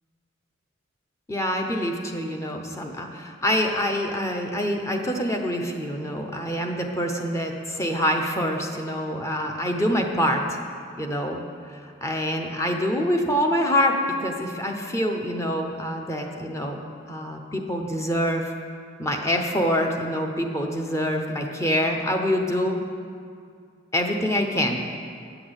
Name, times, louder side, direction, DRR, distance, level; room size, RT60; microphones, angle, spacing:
voice 1, 1.3-10.6 11.0-11.4 11.7-16.8 17.1-18.5 19.0-22.8 23.9-24.9, equal, 15° left, 3 dB, 0.8 m, -25 dB
8.8 x 5.9 x 8.0 m, 2.3 s
head